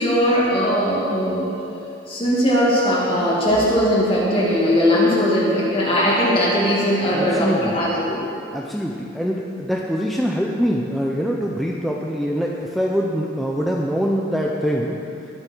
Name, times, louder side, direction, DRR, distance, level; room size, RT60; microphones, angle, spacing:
voice 1, 0.0-1.5 2.1-8.2, equal, 30° left, -6 dB, 2.4 m, -19 dB
voice 2, 7.1-7.7 8.5-15.0, equal, ahead, -2 dB, 0.7 m, -24 dB
21.0 x 7.5 x 4.6 m, 2.6 s
head